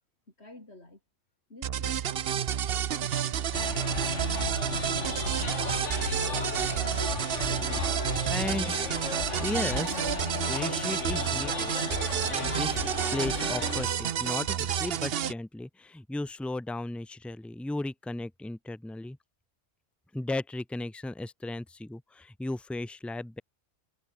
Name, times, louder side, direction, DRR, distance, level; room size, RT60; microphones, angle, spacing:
voice 1, 0.4-1.0 1.5-4.1, left 2 dB, 60° left, 5.4 m, -50 dB
sound 1, 1.6-15.3, right 9 dB, 60° right, 0.9 m, -30 dB
sound 2, 3.5-13.8, left 3 dB, 80° left, 3.0 m, -34 dB
voice 2, 6.4-6.7 8.3-8.7 9.4-10.1 10.5-11.8 12.2-12.8 13.1-19.2 20.1-23.4, left 2 dB, ahead, 0.6 m, -35 dB
omnidirectional pair, 1.2 m